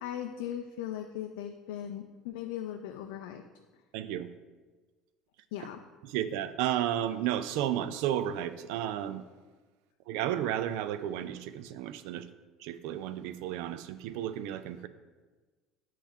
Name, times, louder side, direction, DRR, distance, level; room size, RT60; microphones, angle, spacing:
voice 1, 0.0-3.4 5.5-5.8, left 10 dB, 70° left, 4 dB, 0.4 m, -38 dB
voice 2, 3.9-4.3 6.1-9.2 10.1-12.3 12.6-14.9, right 11 dB, 70° right, 12 dB, 0.3 m, -32 dB
8.0 x 3.0 x 4.4 m, 1.3 s
hypercardioid pair, 65°, 0 cm